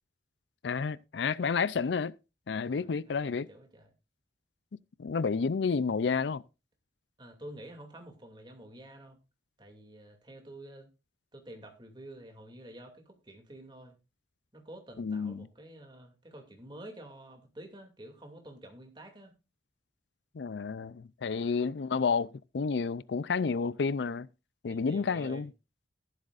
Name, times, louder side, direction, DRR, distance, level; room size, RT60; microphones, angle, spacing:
voice 1, 0.6-2.1 2.5-3.5 5.0-6.4 15.0-15.5 20.4-24.3 24.6-25.5, left 5 dB, 75° left, 0.5 m, -30 dB
voice 2, 2.5-3.9 7.2-9.2 9.6-10.9 11.3-14.0 14.5-19.3 21.3-21.5 24.7-25.4, right 1 dB, 25° right, 2.5 m, -49 dB
14.0 x 12.0 x 2.5 m
head